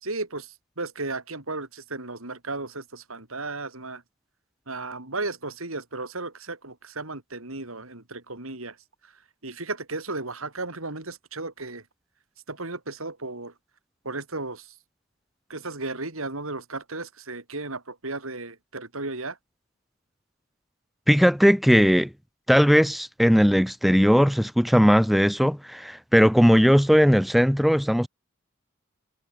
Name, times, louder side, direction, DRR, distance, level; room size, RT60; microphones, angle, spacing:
voice 1, 0.0-4.0 4.7-8.8 9.0-9.1 9.4-11.8 12.5-13.5 14.0-14.7 15.5-19.4, right 3 dB, 80° right, 4.2 m, -34 dB
voice 2, 21.1-22.1 22.5-28.1, equal, ahead, 1.7 m, -18 dB
head